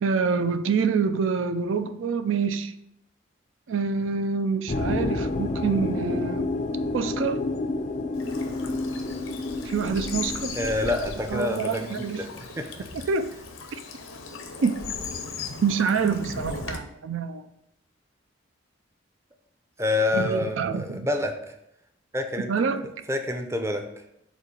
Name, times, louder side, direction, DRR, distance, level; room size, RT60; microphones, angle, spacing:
voice 1, 0.0-2.7 3.7-6.5 6.9-7.4 9.7-10.6 11.3-12.2 13.1-13.3 14.6-14.8 15.6-17.4 20.1-21.1 22.5-22.9, right 5 dB, 75° right, 9 dB, 0.4 m, -26 dB
sound 1, 4.7-11.0, left 2 dB, 40° left, 0.4 m, -29 dB
Bird vocalization bird call bird song / Stream, 8.1-16.8, left 4 dB, 85° left, 0.8 m, -38 dB
voice 2, 10.6-12.3 12.6-12.9 19.8-21.4 22.1-22.5 23.1-23.8, left 2 dB, 15° right, 5 dB, 0.5 m, -27 dB
5.2 x 3.8 x 5.1 m, 0.81 s
head